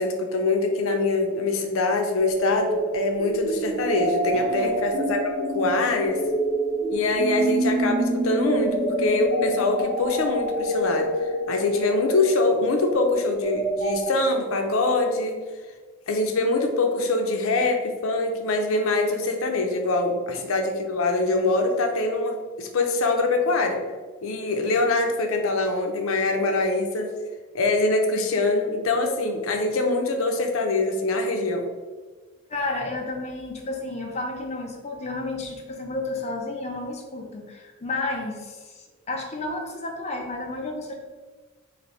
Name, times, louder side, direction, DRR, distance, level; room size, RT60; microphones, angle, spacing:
voice 1, 0.0-6.2 6.9-15.4 16.1-23.8 24.2-27.1 27.5-31.6, left 2 dB, 90° left, 4 dB, 0.5 m, -24 dB
sound 1, 2.2-14.1, right 1 dB, 45° right, 0.8 m, -27 dB
voice 2, 4.3-4.8 32.5-41.0, left 2 dB, 30° left, 1 dB, 0.5 m, -32 dB
4.1 x 2.5 x 3.2 m, 1.4 s
head